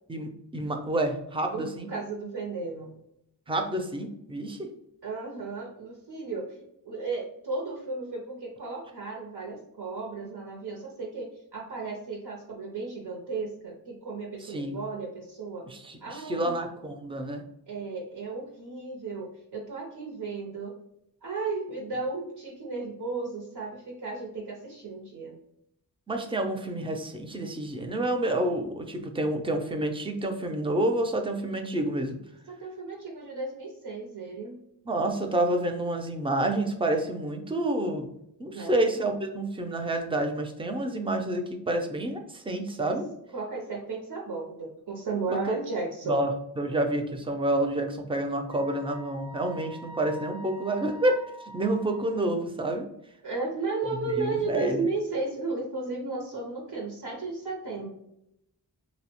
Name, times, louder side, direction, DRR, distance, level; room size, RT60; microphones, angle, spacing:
voice 1, 0.1-1.9 3.5-4.7 14.4-14.8 15.7-17.4 26.1-32.2 34.9-38.1 38.4-43.1 45.3-45.6 46.0-51.2 51.5-52.9 53.9-54.9, right 1 dB, 15° right, 5 dB, 0.4 m, -29 dB
voice 2, 1.5-2.9 5.0-6.5 6.8-15.6 16.0-16.6 17.7-19.3 19.5-20.7 21.2-25.3 32.5-34.6 38.5-39.0 43.3-46.2 53.2-57.9, right 3 dB, 80° right, 0 dB, 0.6 m, -34 dB
Wind instrument woodwind instrument, 48.5-52.4, right 1 dB, 45° left, 0.4 m, -45 dB
2.7 x 2.0 x 2.9 m, 0.77 s
wide cardioid pair, 45°, 40 cm